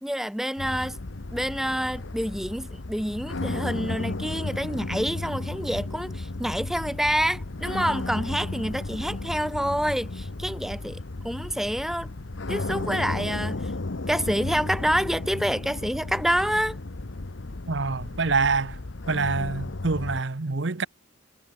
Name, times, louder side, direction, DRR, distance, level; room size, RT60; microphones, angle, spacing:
voice 1, 0.0-1.0 1.3-12.1 12.5-13.7 14.1-16.8, equal, ahead, 1.0 m, -27 dB
sound 1, 0.6-20.2, left 2 dB, 70° left, 1.1 m, -34 dB
voice 2, 17.7-18.8 19.1-20.9, right 4 dB, 65° right, 1.0 m, -26 dB
head